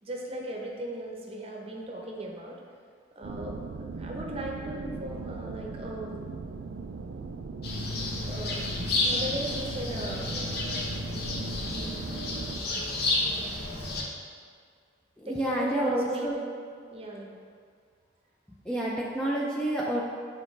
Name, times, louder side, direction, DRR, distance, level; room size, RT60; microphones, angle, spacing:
voice 1, 0.0-2.5 3.1-3.5 3.9-6.2 8.2-8.6 9.0-10.3 15.2-16.6 16.9-17.4, right 1 dB, 30° right, -1 dB, 0.8 m, -37 dB
sound 1, 3.2-12.6, right 4 dB, 75° right, 0.3 m, -39 dB
sound 2, 7.6-14.0, left 2 dB, 55° left, 0.9 m, -31 dB
voice 2, 15.2-16.3 18.7-20.0, right 1 dB, 5° left, -4 dB, 0.4 m, -29 dB
8.9 x 4.2 x 3.2 m, 2.1 s
head